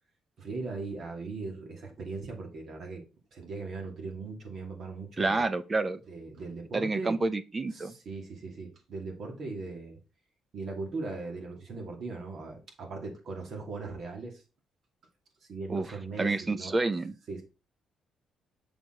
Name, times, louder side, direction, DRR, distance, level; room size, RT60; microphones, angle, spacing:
voice 1, 0.4-3.0 3.3-5.5 6.1-7.2 7.7-10.0 10.5-14.4 15.5-16.8 17.3-17.4, right 3 dB, 60° right, 2.4 m, -39 dB
voice 2, 5.2-6.0 6.7-7.9 15.7-15.9 16.2-17.1, right 3 dB, 25° right, 0.7 m, -29 dB
6.8 x 4.6 x 3.8 m
cardioid pair, 90°, 0 cm